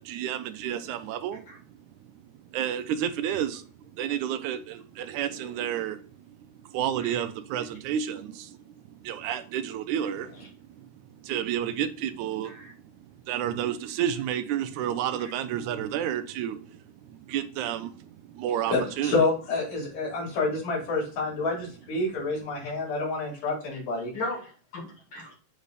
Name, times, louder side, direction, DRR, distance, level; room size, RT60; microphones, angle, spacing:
voice 1, 0.0-1.8 2.5-3.6 3.9-6.1 6.6-8.6 9.0-10.5 10.8-10.9 11.2-16.8 17.1-19.1, right 10 dB, 80° right, 1.9 m, -31 dB
voice 2, 18.7-24.1, left 3 dB, 80° left, 4.8 m, -28 dB
voice 3, 24.1-25.4, left 2 dB, 45° left, 2.1 m, -37 dB
8.1 x 3.4 x 4.0 m
omnidirectional pair, 3.8 m